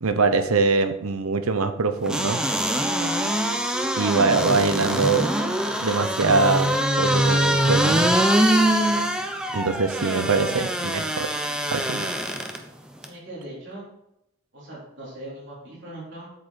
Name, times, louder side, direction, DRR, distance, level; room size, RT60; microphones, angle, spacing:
voice 1, 0.0-2.4 4.0-5.4 5.8-6.7 7.0-8.2 9.5-11.3 11.7-12.1, right 4 dB, 90° right, 10 dB, 0.8 m, -23 dB
sound 1, 2.1-12.6 13.0-13.1, right 1 dB, 5° right, 0.7 m, -23 dB
voice 2, 9.9-10.7 13.0-13.8 14.5-16.3, right 1 dB, 55° right, -7 dB, 4.0 m, -38 dB
8.5 x 7.8 x 4.3 m, 0.84 s
head